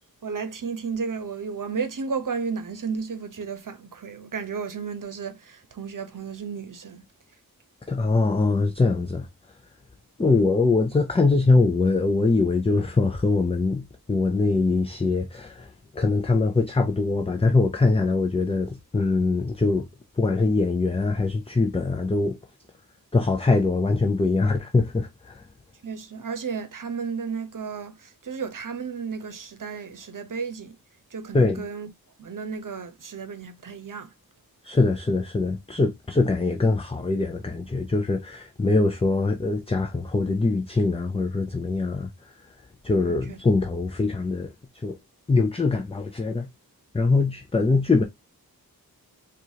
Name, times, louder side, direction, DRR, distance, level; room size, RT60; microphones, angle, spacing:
voice 1, 0.2-7.1 10.2-10.4 25.8-30.8 31.1-31.9 32.2-34.1 42.9-43.4, right 5 dB, 60° right, 0.9 m, -33 dB
voice 2, 7.9-9.3 10.2-19.9 20.2-22.4 23.1-25.4 31.3-31.6 34.6-42.1 42.8-45.0 45.3-46.5 46.9-48.0, left 3 dB, 15° left, 0.5 m, -23 dB
4.6 x 2.5 x 2.8 m
wide cardioid pair, 100°, 37 cm